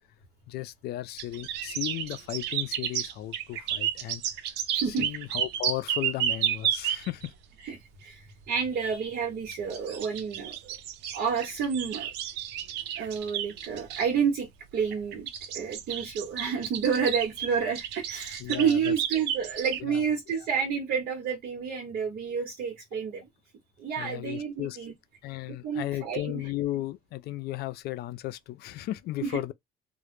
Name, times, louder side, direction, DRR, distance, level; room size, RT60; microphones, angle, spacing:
voice 1, 0.5-4.2 4.9-7.3 9.9-10.0 18.4-18.9 19.8-20.0 24.0-24.8 25.2-29.5, left 15 dB, 70° left, 0.4 m, -35 dB
sound 1, 1.2-7.3 9.5-14.1 14.9-19.8, right 10 dB, 90° right, 0.4 m, -32 dB
voice 2, 4.7-5.1 7.6-10.8 11.1-12.1 13.0-15.3 15.5-23.3 23.8-24.9 25.6-26.4 29.2-29.4, right 6 dB, 65° right, 0.9 m, -30 dB
2.1 x 2.0 x 3.0 m
cardioid pair, 110°, 17 cm